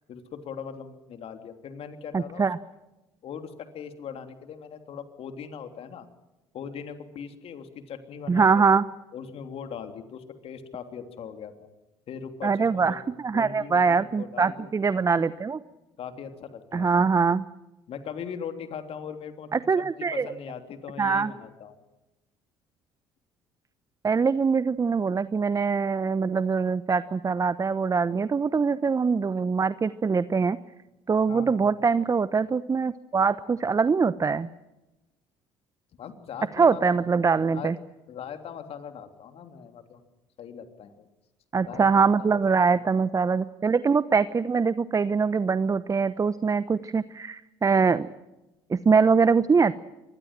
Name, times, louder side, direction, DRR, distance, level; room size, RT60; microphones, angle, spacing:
voice 1, 0.1-2.5 3.2-6.1 6.5-8.6 9.1-11.7 12.1-13.0 13.3-14.7 16.0-17.1 17.9-21.8 31.3-31.7 36.0-36.9 37.5-37.7 38.1-40.0 40.4-41.1 41.7-42.8, left 7 dB, 55° left, 7 dB, 3.3 m, -40 dB
voice 2, 2.1-2.6 8.3-8.8 12.4-15.6 16.7-17.4 19.5-20.3 21.0-21.3 24.0-30.6 31.1-34.5 36.6-37.7 41.5-48.1 48.7-49.7, right 5 dB, 30° right, 15 dB, 0.9 m, -23 dB
25.0 x 20.5 x 7.6 m, 0.99 s
hypercardioid pair, 60°, 12 cm